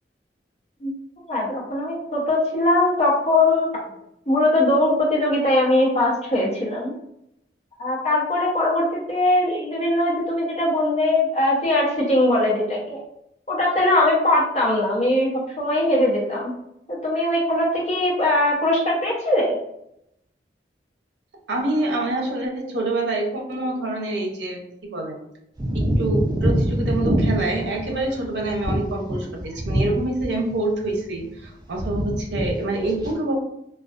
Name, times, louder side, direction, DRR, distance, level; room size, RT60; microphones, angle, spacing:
voice 1, 1.3-3.7 4.3-6.9 7.8-13.0 13.5-16.5 16.9-19.6, left 1 dB, 35° left, -5 dB, 0.8 m, -21 dB
voice 2, 21.5-25.2 25.7-33.4, right 2 dB, 75° right, 0 dB, 0.6 m, -26 dB
sound 1, 25.6-30.5 30.8-31.4 31.7-32.5 32.8-33.1, equal, 25° right, 0.5 m, -24 dB
2.3 x 2.2 x 2.4 m, 0.78 s
head